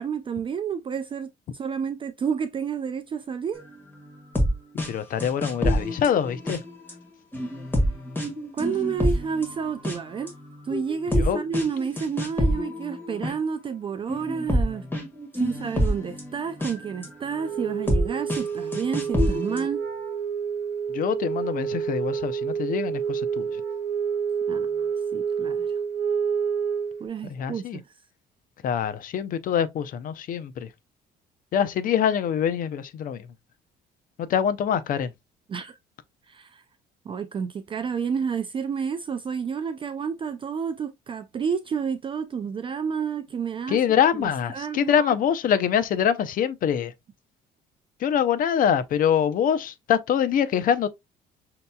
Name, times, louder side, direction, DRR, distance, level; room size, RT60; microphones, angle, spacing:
voice 1, 0.0-3.7 8.5-10.3 10.6-14.9 15.3-19.9 24.5-24.8 25.1-25.8 27.0-27.9 35.5-35.8 36.3-36.6 37.1-43.8 44.2-45.2, right 6 dB, 30° right, 0.4 m, -30 dB
sound 1, 4.1-4.5 4.8-4.9 5.2-6.9 7.3-10.0 10.3-13.3 14.1-17.1 17.6-18.0 18.3-18.4 18.7-19.7, equal, 10° left, 1.6 m, -26 dB
voice 2, 4.9-6.6 11.2-11.4 20.9-23.6 27.3-27.8 28.6-30.7 31.5-33.3 34.2-35.1 43.7-46.9 48.0-50.9, left 8 dB, 55° left, 0.6 m, -24 dB
Wind instrument woodwind instrument, 17.3-27.1, right 7 dB, 50° right, 1.0 m, -28 dB
6.4 x 2.9 x 2.2 m
cardioid pair, 110°, 17 cm